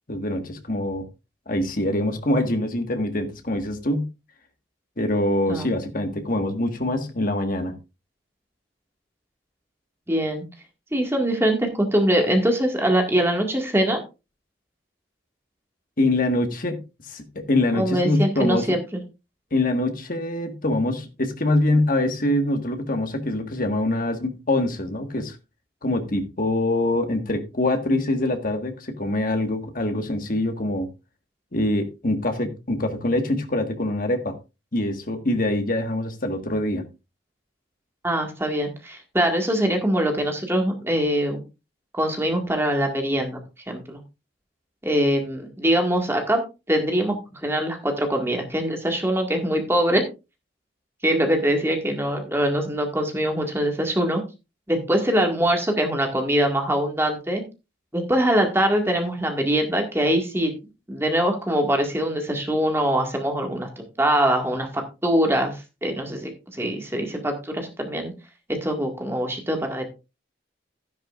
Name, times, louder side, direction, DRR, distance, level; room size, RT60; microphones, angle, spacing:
voice 1, 0.1-1.0 1.5-4.1 5.0-7.7 16.0-18.7 19.5-25.4 25.8-30.9 31.5-34.3 34.7-36.8, left 1 dB, 50° left, 6 dB, 1.6 m, -24 dB
voice 2, 10.1-10.5 10.9-14.0 17.7-18.8 38.0-41.4 41.9-43.4 43.7-44.0 44.8-46.4 46.7-50.0 51.0-54.2 54.7-57.4 57.9-60.5 60.9-63.7 64.0-68.1 68.5-69.8, right 1 dB, 15° right, 3 dB, 1.9 m, -23 dB
12.0 x 10.5 x 2.5 m, 0.27 s
head